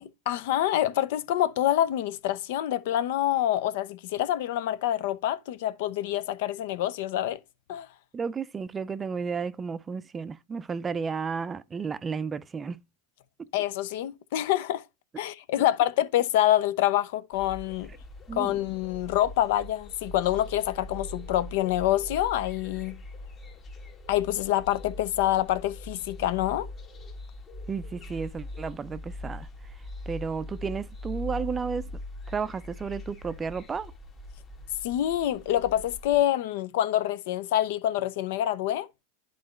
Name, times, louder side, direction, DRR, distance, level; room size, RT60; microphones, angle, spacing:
voice 1, 0.0-7.4 7.7-7.9 13.5-14.8 15.2-17.9 18.3-23.0 24.1-26.7 34.8-38.9, left 13 dB, 65° left, 0.6 m, -26 dB
voice 2, 8.1-12.8 18.3-18.6 27.7-29.5 30.1-31.9 32.3-33.9, right 5 dB, 20° right, 0.4 m, -32 dB
sound 1, 17.3-36.2, left 2 dB, 30° left, 1.3 m, -42 dB
11.0 x 3.9 x 3.2 m
hypercardioid pair, 95°, 0 cm